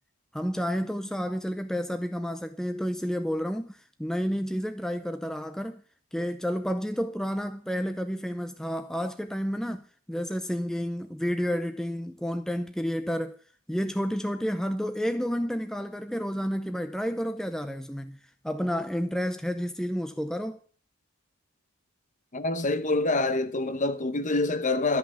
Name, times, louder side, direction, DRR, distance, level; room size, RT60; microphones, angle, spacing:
voice 1, 0.3-5.8 6.1-13.4 13.7-18.2 18.4-20.6, equal, ahead, 0.6 m, -30 dB
voice 2, 22.3-25.0, left 2 dB, 35° left, 0.9 m, -26 dB
12.5 x 6.1 x 8.6 m
head